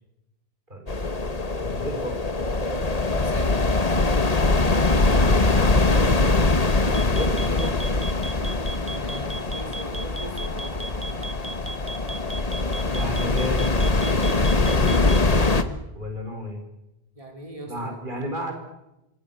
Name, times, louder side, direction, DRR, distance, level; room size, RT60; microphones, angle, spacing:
voice 1, 0.7-1.2 1.6-2.2 6.9-8.0 12.9-13.7 14.3-15.1 15.9-16.6 17.6-18.5, left 1 dB, 50° right, 3 dB, 5.1 m, -33 dB
sound 1, 0.9-15.6, left 3 dB, 40° left, 1.6 m, -22 dB
voice 2, 3.0-3.6 8.9-11.1 17.1-18.0, right 1 dB, 35° right, 2 dB, 4.6 m, -40 dB
sound 2, 6.9-15.3, right 3 dB, 10° right, 1.6 m, -36 dB
27.0 x 26.0 x 7.1 m, 0.94 s
omnidirectional pair, 1.0 m